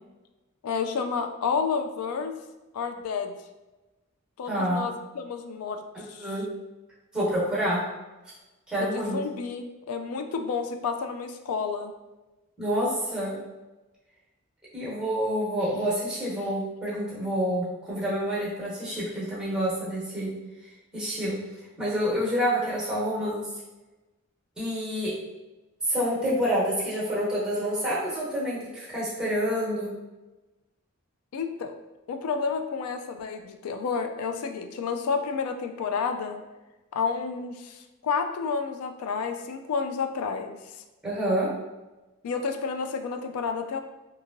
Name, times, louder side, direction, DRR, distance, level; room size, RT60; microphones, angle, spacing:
voice 1, 0.6-2.3 2.7-3.3 4.4-5.8 6.1-6.3 8.8-11.9 31.3-31.7 32.1-36.4 36.9-40.6 42.2-43.8, left 5 dB, 85° left, 6 dB, 0.3 m, -30 dB
voice 2, 4.5-4.8 5.9-6.4 7.1-7.8 8.7-9.2 12.6-13.4 14.7-20.3 20.6-21.4 21.8-23.5 24.6-25.1 25.8-29.9 41.0-41.5, equal, 5° right, -6 dB, 0.9 m, -28 dB
2.9 x 2.5 x 2.5 m, 1.1 s
head